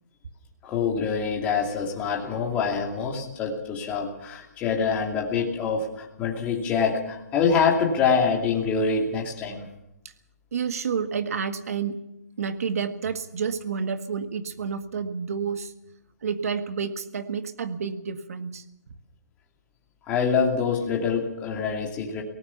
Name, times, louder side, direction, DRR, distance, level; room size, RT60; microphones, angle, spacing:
voice 1, 0.6-9.6 20.1-22.2, left 5 dB, 15° left, -1 dB, 2.7 m, -25 dB
voice 2, 10.5-12.0 12.4-15.7 16.2-18.6, right 6 dB, 60° right, 9 dB, 1.8 m, -29 dB
24.0 x 18.5 x 5.9 m, 0.83 s
hypercardioid pair, 170°, 9 cm